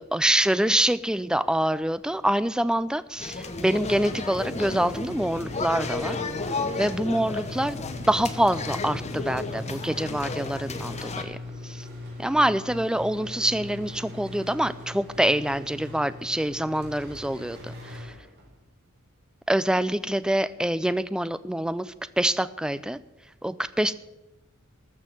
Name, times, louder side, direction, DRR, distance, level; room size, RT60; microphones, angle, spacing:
voice 1, 0.0-6.2 6.8-7.8 8.1-11.4 11.6-11.9 12.2-18.1 19.5-23.0 23.4-23.9, right 1 dB, 5° right, 15 dB, 0.3 m, -25 dB
sound 1, 3.2-11.2, left 3 dB, 30° left, 1.0 m, -33 dB
sound 2, 3.7-18.6, left 2 dB, 50° right, 5.0 m, -40 dB
14.0 x 6.2 x 9.0 m, 0.99 s
head